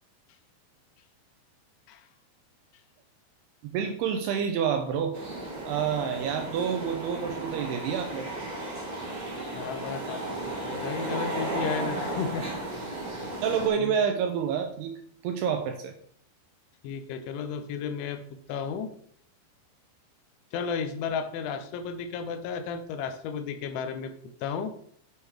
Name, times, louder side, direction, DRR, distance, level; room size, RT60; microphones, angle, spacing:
voice 1, 3.6-5.2 5.7-8.3 13.4-15.0 15.2-15.9, right 7 dB, 85° right, 5 dB, 2.3 m, -28 dB
sound 1, 5.1-13.7, right 1 dB, 35° right, 2.3 m, -34 dB
voice 2, 9.5-12.5 13.8-14.0 16.8-19.0 20.5-24.1 24.4-24.8, left 6 dB, 80° left, 8 dB, 3.1 m, -33 dB
8.7 x 5.6 x 4.8 m, 0.62 s
omnidirectional pair, 5.4 m